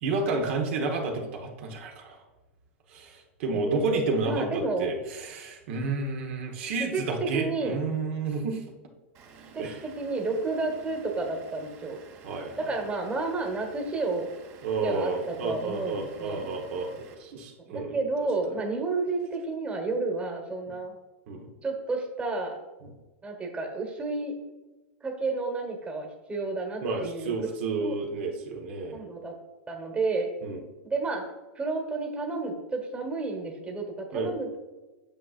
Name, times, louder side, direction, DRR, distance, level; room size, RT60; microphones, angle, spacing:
voice 1, 0.0-2.2 2.9-8.6 9.6-9.8 12.2-12.7 14.6-18.0 21.3-21.5 26.8-29.0 30.4-30.6 34.1-34.3, right 3 dB, 65° right, 2 dB, 1.2 m, -31 dB
voice 2, 3.5-4.9 6.8-7.0 7.3-7.8 9.5-12.0 12.6-14.3 14.8-16.5 17.6-20.9 21.6-22.6 23.2-24.4 25.0-27.4 27.8-27.9 28.9-29.3 29.7-30.4 30.8-31.3 31.5-34.6, right 3 dB, 15° right, 2 dB, 1.3 m, -31 dB
Vehicle / Engine, 9.1-17.1, right 5 dB, 40° right, 1.2 m, -52 dB
8.8 x 6.1 x 2.5 m, 1.2 s
hypercardioid pair, 120°, 7 cm